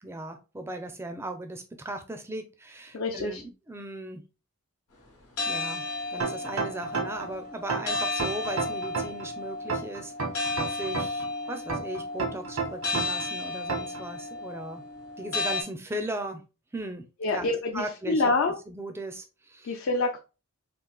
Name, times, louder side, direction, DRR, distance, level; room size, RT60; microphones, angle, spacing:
voice 1, 0.0-4.2 5.5-5.8 6.1-10.1 10.7-14.8 15.2-16.4 16.7-18.3 18.7-19.8, right 1 dB, 10° right, 6 dB, 0.4 m, -37 dB
voice 2, 2.9-3.4 17.2-18.6 19.6-20.2, left 3 dB, 60° left, 2 dB, 0.4 m, -26 dB
sound 1, 5.4-15.6, left 2 dB, 85° left, 1.0 m, -33 dB
sound 2, 6.2-7.3 7.7-9.3 9.7-11.3 11.7-13.3 13.7-14.0, right 4 dB, 80° right, 1.0 m, -30 dB
3.8 x 2.4 x 2.2 m, 0.31 s
head